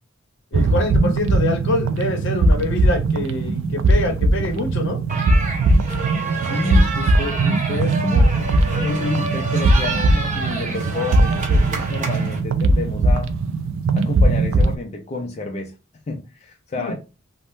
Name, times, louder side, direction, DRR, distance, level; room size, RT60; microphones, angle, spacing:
voice 1, 0.5-5.0 16.8-16.9, left 2 dB, 65° left, 0.7 m, -25 dB
sound 1, 0.5-14.8, right 2 dB, 65° right, 0.3 m, -19 dB
sound 2, 5.1-12.4, right 3 dB, 40° right, 0.8 m, -29 dB
voice 2, 6.4-13.3 13.9-15.7 16.1-16.9, left 2 dB, 35° left, 0.4 m, -29 dB
3.4 x 2.0 x 2.6 m
head